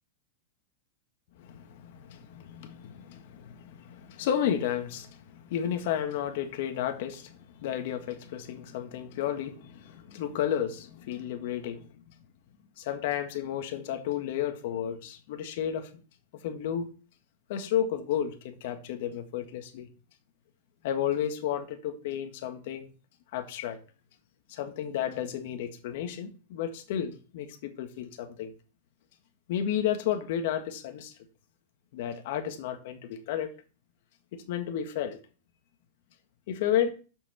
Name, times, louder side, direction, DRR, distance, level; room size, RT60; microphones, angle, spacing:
voice 1, 1.4-12.0 12.8-15.9 16.4-16.9 17.5-19.9 20.8-22.9 23.3-23.8 24.5-28.5 29.5-31.1 31.9-33.5 34.3-35.2 36.5-36.9, left 9 dB, 65° left, 1.6 m, -32 dB
7.2 x 6.2 x 7.1 m
hypercardioid pair, 130°, 0 cm